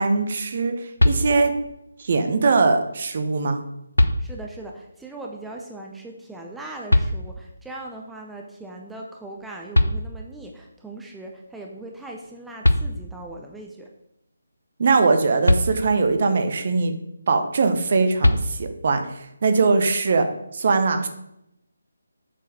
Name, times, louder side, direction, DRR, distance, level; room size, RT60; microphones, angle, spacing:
voice 1, 0.0-1.5 2.0-3.6 14.8-16.9 17.3-20.3 20.5-21.1, right 4 dB, 40° right, 7 dB, 0.8 m, -21 dB
sound 1, 1.0-1.7 3.3-3.4 3.9-4.7 6.9-7.7 9.4-9.5 9.7-10.6 12.3-12.4 12.6-13.4 15.4-16.3 18.2-19.0, left 1 dB, 80° left, 0.7 m, -22 dB
voice 2, 4.0-13.9, right 2 dB, 5° right, 0 dB, 0.5 m, -39 dB
7.4 x 4.6 x 4.8 m, 0.81 s
figure-of-eight pair, 150°, 0 cm